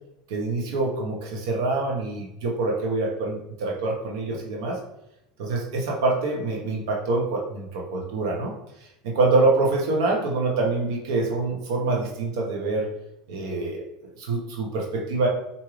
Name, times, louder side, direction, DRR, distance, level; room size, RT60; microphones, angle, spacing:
voice 1, 0.3-4.8 5.4-8.5 9.0-12.9 13.3-13.8 14.2-15.3, right 3 dB, 80° right, -1 dB, 0.9 m, -25 dB
4.7 x 2.7 x 3.1 m, 0.85 s
supercardioid pair, 125°, 2 cm